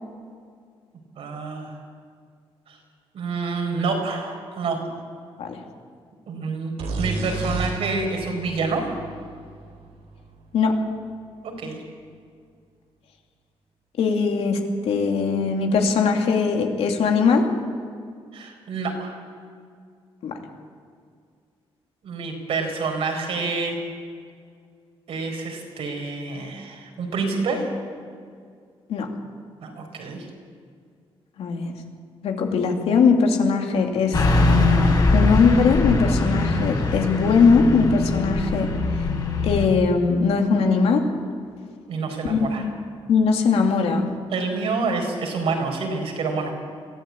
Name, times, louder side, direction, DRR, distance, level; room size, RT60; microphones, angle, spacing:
voice 1, 1.2-1.8 2.7-2.8 3.1-4.8 6.3-8.9 11.6-11.8 18.3-19.2 22.0-23.8 25.1-27.7 29.6-30.3 40.5-40.6 41.9-42.7 44.3-46.5, right 4 dB, 70° right, 2 dB, 4.7 m, -28 dB
sound 1, 6.8-10.5, right 3 dB, 90° right, 4.3 m, -32 dB
voice 2, 14.0-17.5 20.2-20.3 28.9-29.1 31.4-31.7 32.2-34.2 35.1-38.7 39.4-41.0 42.2-42.7 43.1-44.1, left 5 dB, 75° left, 2 dB, 2.6 m, -20 dB
Car passing by / Truck, 34.1-39.7, left 2 dB, 40° left, 4.0 m, -21 dB
22.0 x 15.0 x 8.6 m, 2.2 s
cardioid pair, 140°, 10 cm